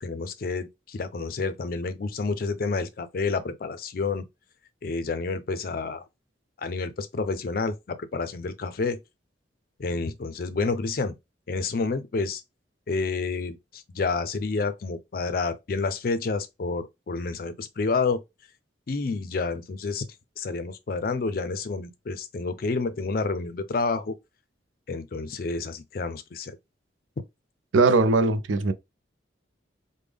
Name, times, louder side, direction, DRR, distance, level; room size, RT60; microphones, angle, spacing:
voice 1, 0.0-4.3 4.8-6.0 6.6-9.0 9.8-11.2 11.5-12.4 12.9-18.2 18.9-20.0 20.4-24.2 24.9-26.6, left 4 dB, 50° left, 0.4 m, -29 dB
voice 2, 27.7-28.7, right 3 dB, 90° right, 0.5 m, -20 dB
3.4 x 2.1 x 3.4 m
head